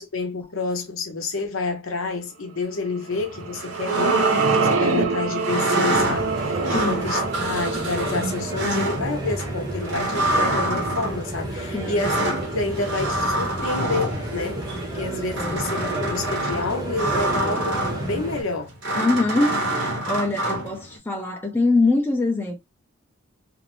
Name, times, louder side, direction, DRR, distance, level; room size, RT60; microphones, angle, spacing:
voice 1, 0.0-18.7, left 3 dB, 75° left, 0.7 m, -29 dB
sound 1, 3.1-21.0, right 1 dB, 55° right, 0.9 m, -27 dB
sound 2, 3.2-9.7, right 5 dB, 75° right, 0.5 m, -26 dB
sound 3, 5.9-18.4, right 1 dB, 20° right, 0.8 m, -31 dB
voice 2, 6.7-7.1 11.7-12.1 15.4-15.5 18.9-22.6, left 2 dB, 10° left, 0.5 m, -23 dB
2.5 x 2.0 x 3.0 m
head